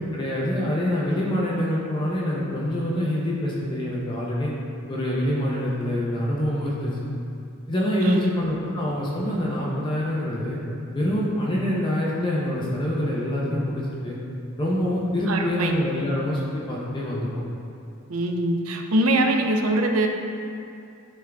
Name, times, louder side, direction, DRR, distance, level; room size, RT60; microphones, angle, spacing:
voice 1, 0.0-4.5 4.9-6.9 7.7-10.6 10.9-14.2 14.6-17.3, left 1 dB, 20° left, -5 dB, 0.8 m, -25 dB
voice 2, 15.3-15.7 18.1-20.1, right 1 dB, 90° right, 4 dB, 0.6 m, -23 dB
9.9 x 3.8 x 3.5 m, 2.6 s
head